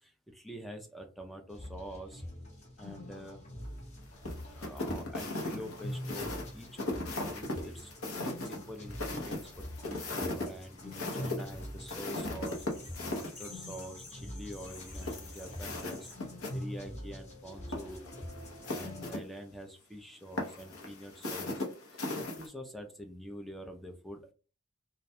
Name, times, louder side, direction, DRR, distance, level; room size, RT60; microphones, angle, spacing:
voice 1, 0.0-2.2 2.8-3.4 4.5-12.7 13.1-16.1 16.5-18.0 18.6-21.6 21.9-24.3, equal, ahead, 4 dB, 0.3 m, -46 dB
sound 1, 1.5-19.1, left 1 dB, 35° left, 0.8 m, -44 dB
sound 2, 4.2-13.3 14.7-16.5 16.8-16.9 17.6-19.2 20.4-22.5, left 2 dB, 70° left, 0.8 m, -38 dB
sound 3, 12.4-16.1, left 3 dB, 90° left, 1.3 m, -51 dB
2.4 x 2.1 x 2.6 m, 0.35 s
head